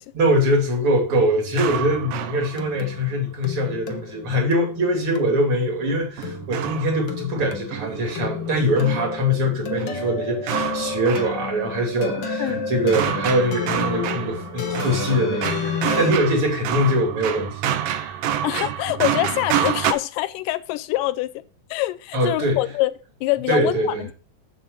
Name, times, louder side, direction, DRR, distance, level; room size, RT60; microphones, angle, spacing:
voice 1, 0.1-18.2 22.1-22.6 23.5-24.1, equal, 40° right, 3.7 m, -23 dB
sound 1, 1.1-3.0 6.2-9.1 9.7-11.7 12.1-19.9, right 10 dB, 75° right, 1.5 m, -28 dB
sound 2, 1.9-16.1, left 5 dB, 70° left, 1.1 m, -31 dB
voice 2, 18.4-21.4 21.7-22.9 23.2-24.1, left 17 dB, 85° left, 2.2 m, -25 dB
8.1 x 7.4 x 4.8 m
omnidirectional pair, 3.8 m